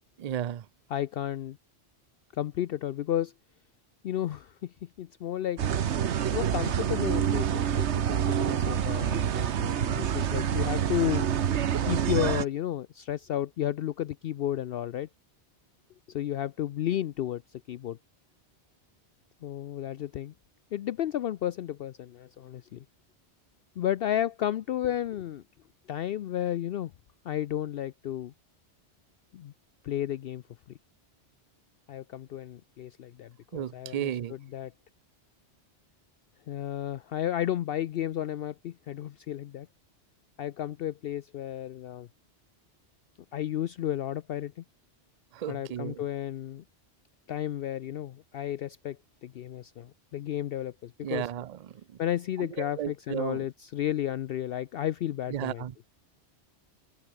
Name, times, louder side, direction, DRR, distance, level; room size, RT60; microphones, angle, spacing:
voice 1, 0.2-0.7 33.5-34.3 45.3-46.0 51.0-51.6 52.4-53.5 55.3-55.7, right 11 dB, 55° right, 0.5 m, -34 dB
voice 2, 0.9-1.6 2.3-3.3 4.0-5.6 6.3-11.3 11.8-15.1 16.1-18.0 19.4-20.3 20.7-22.8 23.8-25.4 25.9-26.9 27.2-28.3 29.3-29.5 29.8-30.4 31.9-34.7 36.5-39.7 40.4-42.1 43.3-44.6 45.5-46.6 47.3-51.3 52.0-55.6, left 11 dB, 65° left, 0.7 m, -32 dB
sound 1, 5.6-12.4, right 9 dB, 80° right, 1.2 m, -27 dB
omnidirectional pair, 1.1 m